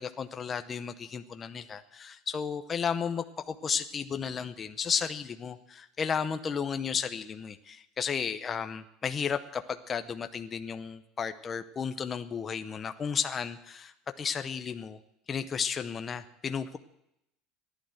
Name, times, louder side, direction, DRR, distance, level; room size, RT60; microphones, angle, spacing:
voice 1, 0.0-15.0 15.3-16.8, left 6 dB, 20° left, 9 dB, 0.7 m, -33 dB
15.0 x 11.5 x 7.8 m, 0.80 s
cardioid pair, 175°, 0 cm